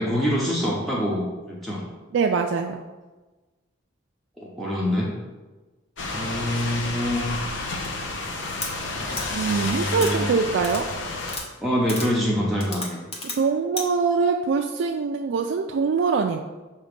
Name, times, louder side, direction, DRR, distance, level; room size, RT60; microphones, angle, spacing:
voice 1, 0.0-1.8 4.4-5.1 6.1-7.4 9.4-10.3 11.6-13.0, equal, ahead, -6 dB, 0.8 m, -25 dB
voice 2, 2.1-2.8 9.3-10.9 13.3-16.4, right 5 dB, 75° right, 3 dB, 0.3 m, -23 dB
sound 1, 6.0-11.4, left 3 dB, 75° left, 0.8 m, -30 dB
sound 2, 8.6-8.7 9.2-9.3 9.9-10.1 10.6-10.8 11.3-11.4 11.9-12.1 12.6-13.4 13.8-13.9, left 2 dB, 35° left, 1.0 m, -32 dB
6.4 x 3.0 x 5.1 m, 1.2 s
head